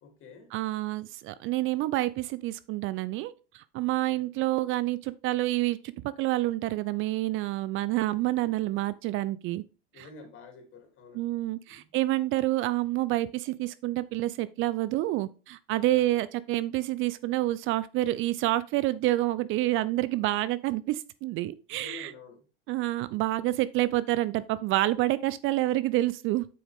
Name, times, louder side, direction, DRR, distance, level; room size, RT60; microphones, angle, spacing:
voice 1, 0.0-0.5 3.9-4.3 9.9-11.4 11.7-11.9 15.9-16.2 21.7-22.4, left 4 dB, 45° left, 3.1 m, -49 dB
voice 2, 0.5-9.6 10.0-10.1 11.1-22.1 22.7-26.5, right 16 dB, 45° right, 0.5 m, -28 dB
7.9 x 6.1 x 3.5 m
hypercardioid pair, 95°, 30 cm